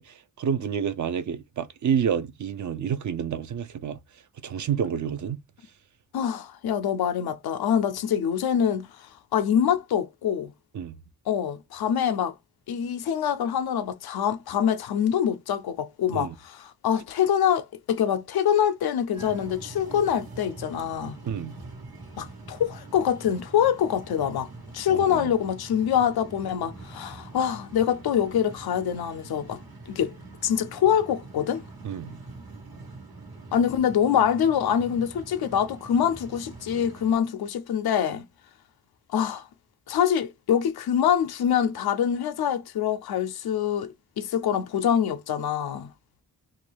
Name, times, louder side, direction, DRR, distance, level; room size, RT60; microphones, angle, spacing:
voice 1, 0.0-4.0 4.4-5.4 10.7-11.0 16.1-16.3 21.3-21.5 24.9-25.3 31.8-32.2, right 8 dB, 55° right, 0.5 m, -29 dB
voice 2, 6.1-10.5 11.3-12.3 12.7-21.2 22.2-24.5 24.7-29.6 29.9-30.2 30.4-31.6 33.5-38.2 39.1-39.4 39.9-45.9, left 9 dB, 90° left, 0.5 m, -25 dB
sound 1, 19.1-37.2, right 3 dB, 75° right, 1.3 m, -44 dB
2.5 x 2.3 x 3.2 m
cardioid pair, 75°, 36 cm